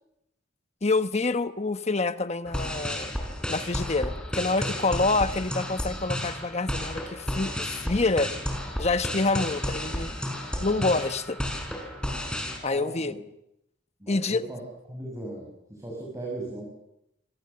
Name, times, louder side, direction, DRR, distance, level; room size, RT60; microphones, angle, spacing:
voice 1, 0.8-3.1 3.5-8.3 8.8-10.1 10.6-11.4 12.6-13.2 14.1-14.4, left 3 dB, 35° left, 11 dB, 1.0 m, -27 dB
sound 1, 2.5-12.6, equal, 5° left, 5.1 m, -32 dB
voice 2, 10.5-10.9 12.6-13.2 14.0-14.6 14.9-16.7, right 2 dB, 20° right, -2 dB, 6.6 m, -38 dB
28.0 x 25.5 x 6.8 m, 0.83 s
head